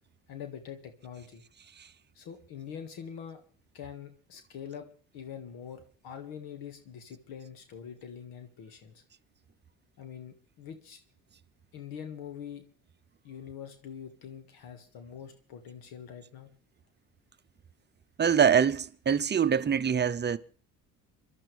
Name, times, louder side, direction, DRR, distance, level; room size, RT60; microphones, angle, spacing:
voice 1, 0.3-1.4 2.2-3.4 3.7-4.9 5.1-9.0 10.0-11.0 11.7-12.6 13.2-16.5, left 8 dB, 75° left, 2.0 m, -44 dB
voice 2, 18.2-20.4, right 7 dB, 30° right, 0.8 m, -24 dB
25.5 x 12.0 x 3.4 m
supercardioid pair, 75°, 36 cm